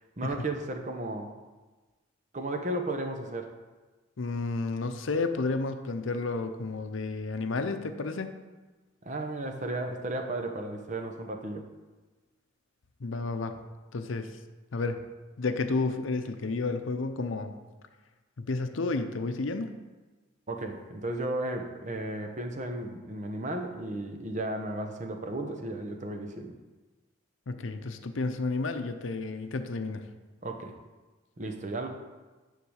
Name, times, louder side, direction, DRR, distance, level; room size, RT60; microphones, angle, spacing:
voice 1, 0.2-1.3 2.3-3.5 9.0-11.7 20.5-26.5 30.4-30.7 31.4-31.9, right 1 dB, 40° right, 4 dB, 0.8 m, -34 dB
voice 2, 4.2-8.3 13.0-13.6 13.9-14.3 14.7-15.0 15.4-17.5 18.4-19.7 27.5-30.0, left 3 dB, 75° left, 8 dB, 0.6 m, -31 dB
10.0 x 3.8 x 6.3 m, 1.3 s
head